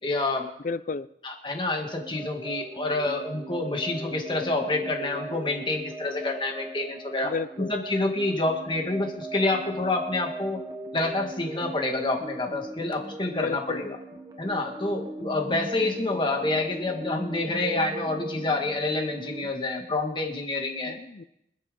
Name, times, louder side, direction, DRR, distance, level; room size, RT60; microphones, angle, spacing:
voice 1, 0.0-0.5 1.2-7.3 7.7-10.6 10.9-13.9 14.4-21.0, left 2 dB, 25° left, 3 dB, 1.8 m, -28 dB
voice 2, 0.6-1.1 7.2-7.7 13.3-14.0 20.9-21.2, left 4 dB, 45° left, 15 dB, 0.5 m, -32 dB
sound 1, 1.9-19.5, right 1 dB, 20° right, 1.0 m, -39 dB
25.0 x 8.6 x 3.8 m, 0.80 s
head